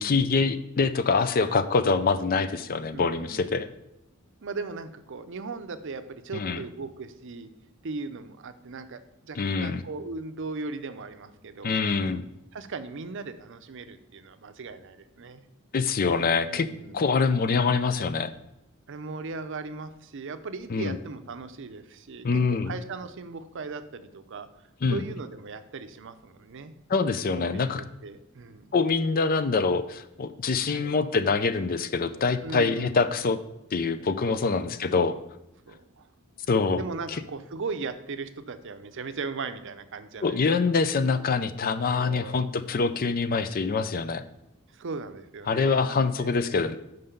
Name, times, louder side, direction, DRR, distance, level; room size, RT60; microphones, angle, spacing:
voice 1, 0.0-3.7 6.3-6.6 9.4-9.8 11.6-12.2 15.7-16.7 16.9-18.3 20.7-21.0 22.2-22.7 24.8-25.0 26.9-27.8 28.7-33.4 33.7-35.2 36.5-36.8 37.1-37.2 40.2-44.2 45.5-46.8, left 4 dB, 40° left, 11 dB, 0.4 m, -25 dB
voice 2, 2.9-3.6 4.4-7.5 7.8-12.2 12.5-15.4 16.5-17.0 17.9-18.1 18.9-24.5 24.9-26.7 27.4-28.7 30.7-30.9 32.4-33.0 34.3-35.2 35.7-36.1 36.8-40.5 41.9-42.4 44.7-46.3, right 4 dB, 60° right, 10 dB, 0.6 m, -38 dB
5.7 x 5.3 x 6.7 m, 0.88 s
head